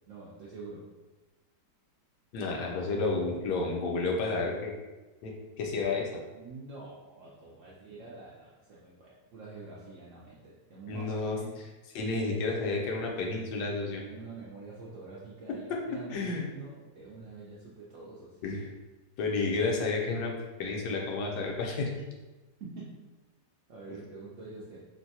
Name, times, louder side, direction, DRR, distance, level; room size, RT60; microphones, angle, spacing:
voice 1, 0.1-0.8 6.3-11.5 14.0-18.4 22.6-23.0 23.7-24.8, right 3 dB, 70° right, -5 dB, 0.7 m, -46 dB
voice 2, 2.3-4.7 5.2-6.1 10.9-11.4 11.9-14.0 15.7-16.4 18.4-18.7 19.2-21.9 23.9-24.0, left 3 dB, 75° left, 0 dB, 1.2 m, -31 dB
3.8 x 2.1 x 2.7 m, 1.2 s
omnidirectional pair, 1.8 m